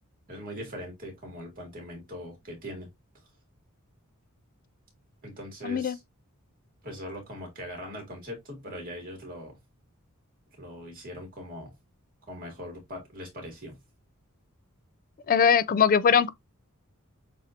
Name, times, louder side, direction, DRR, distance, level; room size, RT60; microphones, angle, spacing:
voice 1, 0.3-2.9 5.2-6.0 6.8-9.6 10.6-11.7 12.3-13.8, equal, 40° right, 2.3 m, -41 dB
voice 2, 5.6-6.0 15.3-16.3, left 7 dB, 40° left, 0.3 m, -21 dB
7.0 x 2.7 x 2.7 m
head